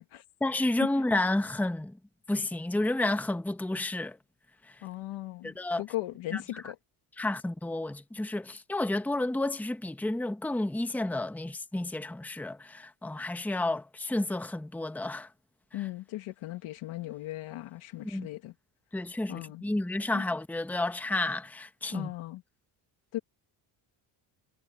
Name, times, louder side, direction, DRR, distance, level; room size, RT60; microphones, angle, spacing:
voice 1, 0.4-2.0 2.3-4.2 4.6-4.8 5.4-5.8 6.3-6.6 7.2-15.3 18.0-18.3 18.9-22.1, left 2 dB, 5° left, 1.0 m, -31 dB
voice 2, 4.8-6.8 15.7-18.5 19.3-19.6 20.1-20.2 21.9-22.4 23.1-23.2, left 16 dB, 85° left, 1.6 m, -38 dB
cardioid pair, 120°, 47 cm